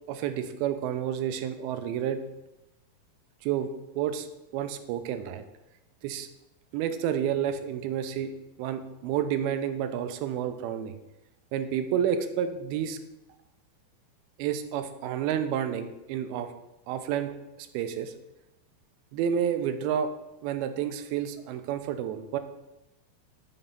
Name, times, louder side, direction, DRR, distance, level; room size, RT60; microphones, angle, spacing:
voice 1, 0.1-2.2 3.4-3.7 4.0-4.3 4.5-5.4 6.0-6.3 6.7-8.3 8.6-10.9 11.5-13.0 14.4-16.5 16.9-17.3 17.6-18.1 19.1-20.1 20.4-22.4, right 9 dB, 85° right, 9 dB, 2.4 m, -30 dB
7.0 x 2.9 x 5.3 m, 0.95 s
omnidirectional pair, 4.3 m